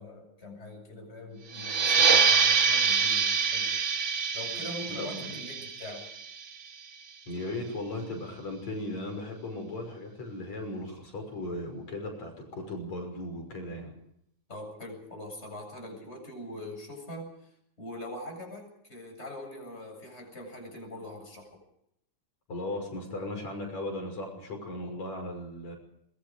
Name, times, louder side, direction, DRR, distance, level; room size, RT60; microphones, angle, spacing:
voice 1, 0.0-3.7 4.3-6.1 14.5-17.5 17.8-21.6, left 1 dB, 20° left, 2 dB, 8.1 m, -43 dB
sound 1, 1.5-6.8, right 5 dB, 50° right, 0.8 m, -25 dB
voice 2, 5.0-5.4 7.3-13.9 22.5-25.8, left 1 dB, 65° left, 2 dB, 7.3 m, -37 dB
24.5 x 23.0 x 5.1 m, 0.75 s
omnidirectional pair, 3.4 m